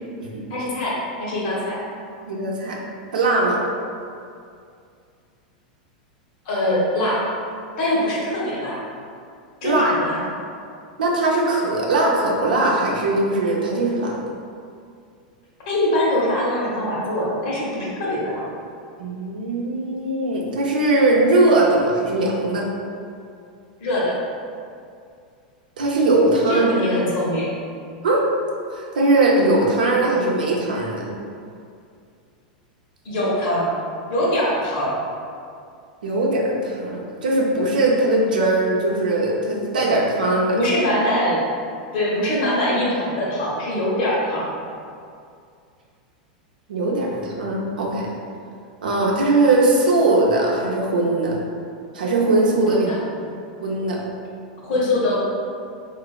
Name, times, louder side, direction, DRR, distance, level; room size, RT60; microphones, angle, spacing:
voice 1, 0.5-1.8 6.4-7.3 7.8-8.8 9.6-10.2 15.7-18.4 23.8-24.2 26.5-27.5 33.0-33.7 34.1-34.9 40.5-41.4 41.9-44.5 52.6-53.0 54.6-55.2, left 1 dB, 60° left, -6 dB, 1.0 m, -23 dB
voice 2, 2.2-2.8 3.1-3.6 9.6-9.9 11.0-14.2 19.0-22.6 25.8-26.8 28.0-28.2 28.7-31.1 36.0-40.6 46.7-48.1 48.8-51.4 51.9-52.9 53.6-54.0, right 2 dB, 85° right, -3 dB, 0.5 m, -20 dB
2.9 x 2.4 x 2.3 m, 2.4 s
hypercardioid pair, 110°, 5 cm